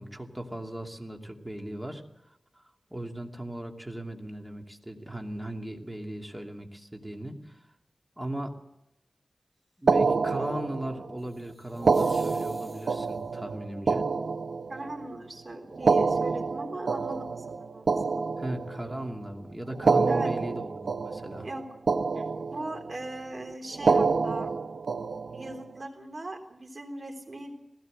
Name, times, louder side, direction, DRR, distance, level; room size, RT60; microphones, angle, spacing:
voice 1, 0.0-2.0 2.6-2.7 2.9-7.6 8.2-8.5 9.8-14.1 15.8-15.9 18.4-21.5, right 1 dB, 10° right, 2 dB, 2.7 m, -37 dB
sound 1, 9.9-11.1 11.8-15.1 15.7-19.0 19.7-21.6 21.9-22.9 23.7-25.6, right 4 dB, 75° right, 0.8 m, -27 dB
sound 2, 11.2-13.4, equal, 10° left, 4.5 m, -53 dB
voice 2, 14.7-18.2 20.1-20.3 21.4-21.7 22.2-22.3 22.5-24.5 25.3-27.6, right 2 dB, 45° right, 3 dB, 3.7 m, -39 dB
19.5 x 17.0 x 7.8 m, 0.83 s
wide cardioid pair, 95°, 0 cm